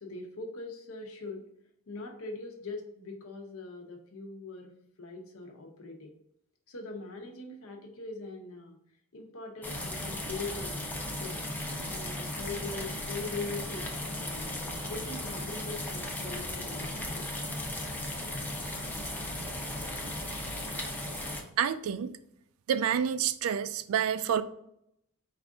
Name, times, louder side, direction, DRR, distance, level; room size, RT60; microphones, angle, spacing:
voice 1, 0.0-1.5 1.9-6.1 6.7-8.8 9.1-11.4 11.9-17.3, left 3 dB, 70° left, 0.8 m, -42 dB
sound 1, 9.6-21.4, left 1 dB, 10° left, 0.6 m, -36 dB
voice 2, 21.6-22.1 22.7-24.4, right 8 dB, 70° right, 0.3 m, -28 dB
4.7 x 2.5 x 3.6 m
head